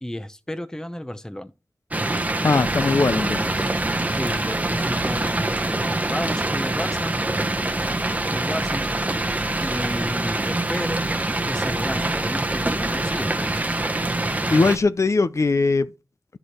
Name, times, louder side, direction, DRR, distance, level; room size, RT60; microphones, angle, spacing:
voice 1, 0.0-1.5 4.1-7.1 7.7-8.8 9.6-11.1 11.4-13.6, left 1 dB, 10° left, 0.8 m, -32 dB
sound 1, 1.9-14.8, right 2 dB, 25° right, 0.9 m, -25 dB
voice 2, 2.4-3.7 14.5-15.9, left 3 dB, 55° left, 0.5 m, -20 dB
sound 2, 2.6-14.8, right 2 dB, 65° right, 1.4 m, -40 dB
11.0 x 4.9 x 4.3 m
cardioid pair, 50°, 6 cm